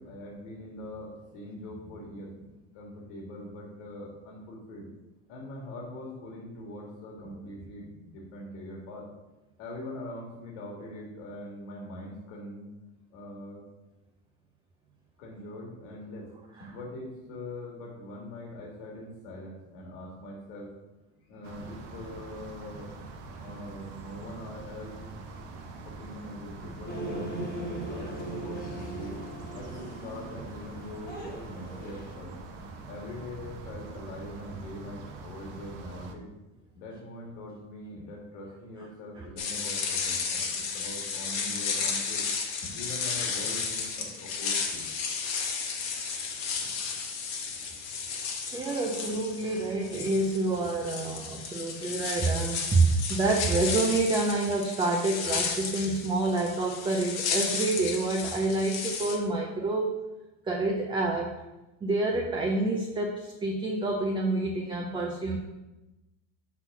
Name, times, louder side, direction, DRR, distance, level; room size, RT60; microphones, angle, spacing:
voice 1, 0.0-4.9 5.3-9.1 9.6-12.7 13.1-13.6 15.2-16.3 16.6-20.7 21.3-22.9 23.4-25.1 25.9-27.5 27.8-29.2 29.5-36.3 36.7-42.2 42.6-44.9 46.5-47.0, left 1 dB, 75° left, -1 dB, 1.8 m, -42 dB
sound 1, 21.4-36.1, right 3 dB, 70° right, 1.0 m, -44 dB
sound 2, 26.9-32.1, right 1 dB, 25° left, 1.3 m, -39 dB
sound 3, 39.4-59.2, left 5 dB, 50° left, 1.1 m, -33 dB
voice 2, 48.1-59.9 60.5-61.4 61.8-65.4, right 2 dB, 15° right, 1 dB, 0.5 m, -28 dB
5.9 x 3.9 x 5.9 m, 1.0 s
cardioid pair, 145°, 36 cm